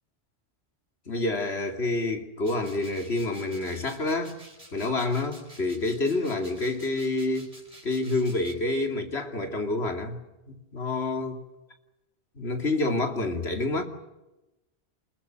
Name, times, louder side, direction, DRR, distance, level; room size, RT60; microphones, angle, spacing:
voice 1, 1.1-4.4 4.7-7.5 7.8-10.2 10.5-11.4 12.4-13.8, left 2 dB, 80° left, 4 dB, 3.1 m, -28 dB
sound 1, 2.4-8.5, right 1 dB, 35° right, 5.0 m, -51 dB
29.0 x 21.5 x 7.8 m, 0.99 s
omnidirectional pair, 1.1 m